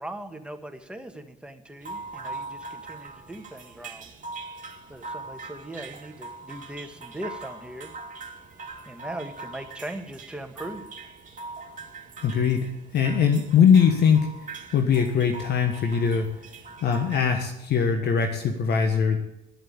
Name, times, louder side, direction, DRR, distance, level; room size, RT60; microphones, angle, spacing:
voice 1, 0.0-4.1 4.9-7.9 8.8-10.9, right 1 dB, 5° right, 6 dB, 1.6 m, -39 dB
sound 1, 1.8-17.2, right 3 dB, 40° right, 2.0 m, -41 dB
voice 2, 12.2-14.3 14.7-16.3 16.8-19.2, left 7 dB, 55° left, 5 dB, 1.3 m, -21 dB
11.0 x 7.8 x 8.5 m, 0.85 s
hypercardioid pair, 60°, 20 cm